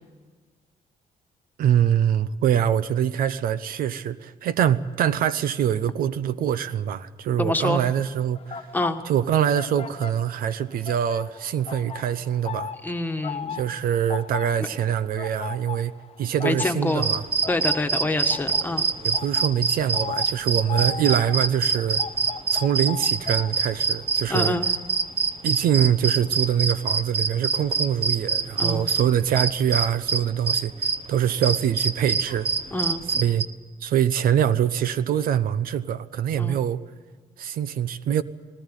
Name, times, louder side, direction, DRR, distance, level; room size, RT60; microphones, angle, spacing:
voice 1, 1.6-8.7 9.1-12.7 13.5-15.9 16.2-17.2 19.0-22.0 22.5-24.6 25.4-32.5 33.1-33.4 33.8-36.8 37.4-38.2, right 9 dB, 80° right, 0.8 m, -24 dB
voice 2, 7.4-7.8 8.7-9.0 12.8-13.6 14.6-14.7 16.4-17.1 17.5-18.9 24.3-24.7 28.6-28.9 32.7-33.0 36.4-36.6, left 2 dB, 10° left, 1.6 m, -26 dB
sound 1, 8.4-10.6 10.8-25.7 26.0-26.3, left 7 dB, 40° left, 1.0 m, -37 dB
sound 2, 16.9-31.0 31.4-33.5, right 5 dB, 40° right, 1.0 m, -25 dB
20.0 x 18.0 x 9.1 m
cardioid pair, 110°, 15 cm